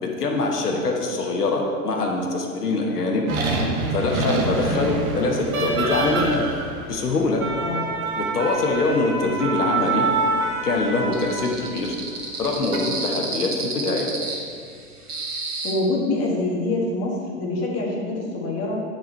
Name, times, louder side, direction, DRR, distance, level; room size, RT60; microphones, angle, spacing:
voice 1, 0.0-3.2 3.9-6.4 6.9-7.4 8.2-10.1 10.6-11.9 12.4-14.1, left 3 dB, 80° left, 1 dB, 1.2 m, -23 dB
sound 1, 3.3-11.7 12.5-12.8, right 3 dB, 65° right, 1.3 m, -26 dB
voice 2, 7.6-7.9 15.6-18.8, left 2 dB, 35° left, -2 dB, 1.8 m, -25 dB
sound 2, 11.1-15.7, right 3 dB, 80° right, 1.5 m, -31 dB
9.3 x 4.8 x 4.5 m, 2.3 s
figure-of-eight pair, 95°, 45 cm